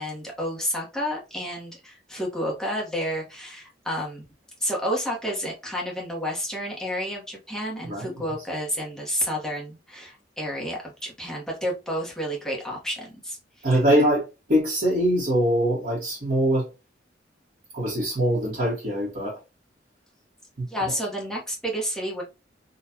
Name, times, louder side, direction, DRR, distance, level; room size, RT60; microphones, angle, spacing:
voice 1, 0.0-4.2 4.6-13.7 20.7-22.2, equal, 5° left, 1.1 m, -30 dB
voice 2, 13.6-16.7 17.7-19.4 20.6-20.9, equal, 50° right, 1.4 m, -23 dB
3.9 x 2.5 x 2.8 m
head